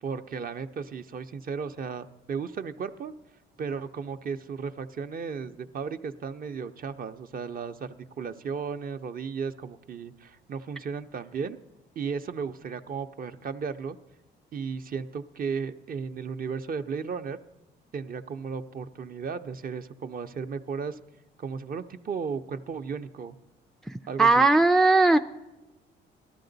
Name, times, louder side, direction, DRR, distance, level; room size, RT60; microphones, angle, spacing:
voice 1, 0.0-3.1 3.6-11.6 12.0-14.0 14.5-17.4 17.9-21.0 21.4-23.4 24.1-24.5, right 6 dB, 45° right, 9 dB, 0.6 m, -35 dB
voice 2, 23.9-25.2, right 3 dB, ahead, 7 dB, 0.3 m, -19 dB
18.0 x 12.5 x 3.9 m, 1.0 s
cardioid pair, 90°, 20 cm